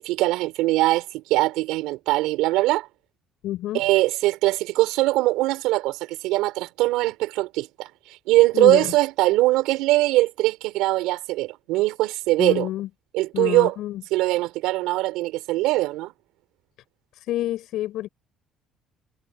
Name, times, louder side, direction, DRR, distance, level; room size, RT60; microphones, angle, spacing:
voice 1, 0.0-2.9 3.7-12.7 13.1-13.8 14.1-16.1, right 18 dB, 90° right, 3.6 m, -22 dB
voice 2, 3.4-3.9 8.5-8.9 12.4-12.9 13.3-14.0 17.1-18.1, left 14 dB, 65° left, 7.0 m, -28 dB
cardioid pair, 140°, 0 cm